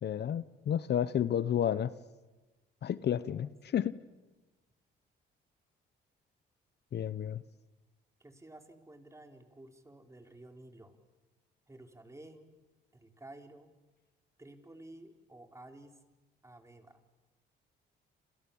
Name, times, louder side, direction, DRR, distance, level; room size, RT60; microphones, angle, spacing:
voice 1, 0.0-1.9 2.8-4.0 6.9-7.4, left 9 dB, 55° left, 16 dB, 1.0 m, -31 dB
voice 2, 3.3-3.7 8.2-11.0 11.7-12.5 12.9-13.7 14.4-16.0 16.4-17.0, right 1 dB, 15° right, 5 dB, 4.2 m, -53 dB
29.0 x 28.0 x 7.2 m, 1.2 s
cardioid pair, 90°, 20 cm